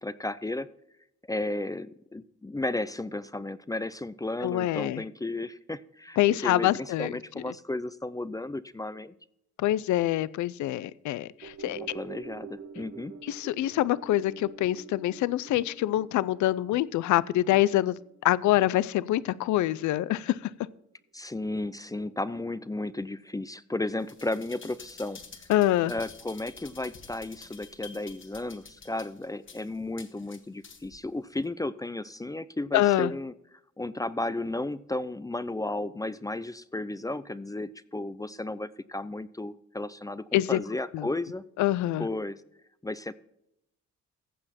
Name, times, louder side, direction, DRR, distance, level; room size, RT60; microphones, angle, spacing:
voice 1, 0.0-0.7 1.3-9.1 11.7-13.1 21.1-25.2 25.9-33.3 33.8-41.4 42.0-42.4 42.8-43.1, left 2 dB, 10° left, 16 dB, 0.5 m, -34 dB
voice 2, 4.4-5.0 6.2-7.1 9.6-11.8 13.2-20.5 25.5-25.9 32.7-33.1 40.3-40.6 40.9-41.1 41.6-42.1, left 14 dB, 70° left, 20 dB, 0.5 m, -25 dB
sound 1, 11.4-19.8 20.2-20.3, right 6 dB, 50° right, 2.4 m, -47 dB
sound 2, 24.0-31.0 31.4-31.5, left 5 dB, 40° left, 1.7 m, -49 dB
15.0 x 7.8 x 4.3 m, 0.78 s
cardioid pair, 90°, 30 cm